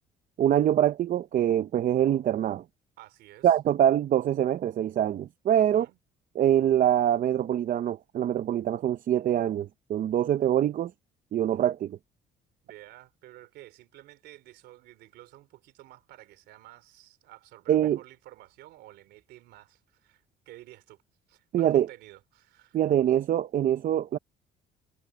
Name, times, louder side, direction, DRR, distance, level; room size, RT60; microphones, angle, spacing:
voice 1, 0.4-2.6 3.4-5.9 6.3-10.9 11.3-12.0 17.7-18.0 21.5-21.9 22.7-24.2, right 10 dB, 50° right, 0.7 m, -24 dB
voice 2, 3.0-3.5 5.5-6.0 12.6-21.0 21.3-22.8, right 15 dB, 80° right, 3.3 m, -51 dB
cardioid pair, 110°, 17 cm